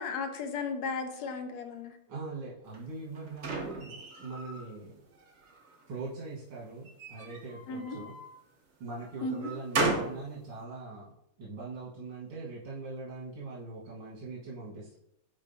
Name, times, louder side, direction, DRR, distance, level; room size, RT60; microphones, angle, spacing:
voice 1, 0.0-1.9 7.7-8.0 9.2-9.5, left 4 dB, 75° left, 6 dB, 0.9 m, -35 dB
voice 2, 2.1-4.9 5.9-8.2 8.8-15.0, right 3 dB, 85° right, -8 dB, 2.4 m, -42 dB
sound 1, 2.7-4.7 5.1-5.9 6.8-8.3 8.9-10.2, right 2 dB, 50° right, 0.8 m, -35 dB
11.0 x 3.7 x 2.7 m, 0.79 s
omnidirectional pair, 2.3 m